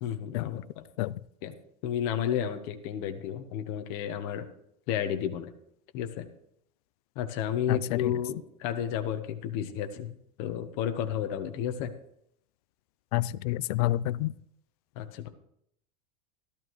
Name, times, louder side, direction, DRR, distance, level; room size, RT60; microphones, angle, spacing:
voice 1, 0.0-0.8 1.4-1.5 1.8-4.5 4.9-5.5 5.9-6.3 7.1-10.1 10.4-11.9 15.0-15.3, left 9 dB, 50° left, 1.2 m, -32 dB
voice 2, 7.7-8.1 13.1-14.3, left 15 dB, 65° left, 0.4 m, -28 dB
14.0 x 12.0 x 3.2 m
supercardioid pair, 170°, 21 cm